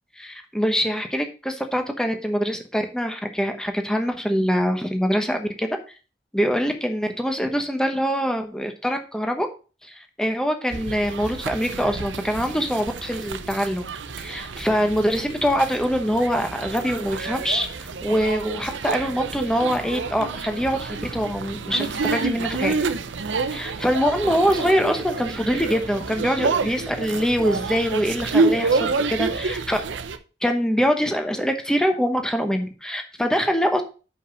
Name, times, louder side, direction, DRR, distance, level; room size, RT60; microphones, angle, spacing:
voice 1, 0.2-5.8 6.3-9.5 9.8-13.9 14.2-22.7 23.5-29.8 30.4-33.8, equal, 5° left, 5 dB, 1.0 m, -24 dB
sound 1, 10.7-30.2, right 4 dB, 85° right, 0.7 m, -28 dB
5.7 x 5.5 x 6.2 m, 0.35 s
head